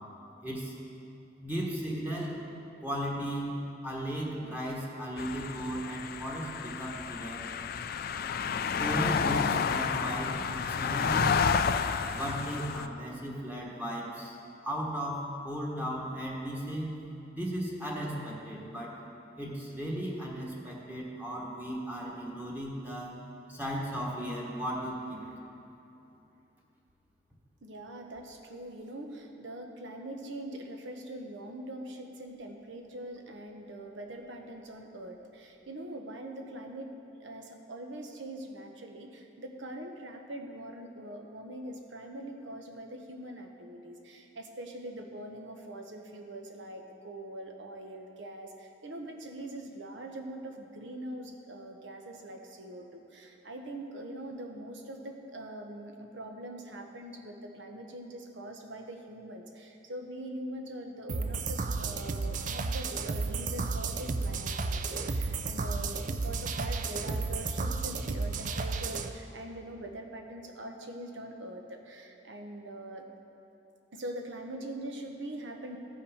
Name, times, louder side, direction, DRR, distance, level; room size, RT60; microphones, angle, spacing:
voice 1, 0.4-0.7 1.4-2.4 2.8-3.5 3.8-7.5 8.8-11.4 12.1-14.3 14.6-16.9 17.3-19.0 19.4-23.2 23.5-25.2, equal, 10° right, -3 dB, 1.4 m, -36 dB
sound 1, 5.2-12.9, left 6 dB, 55° left, 0.4 m, -30 dB
voice 2, 27.6-73.0 73.9-75.8, right 1 dB, 75° right, 3 dB, 1.0 m, -43 dB
sound 2, 61.1-69.1, right 3 dB, 45° right, 0.4 m, -33 dB
14.5 x 5.6 x 5.0 m, 2.9 s
head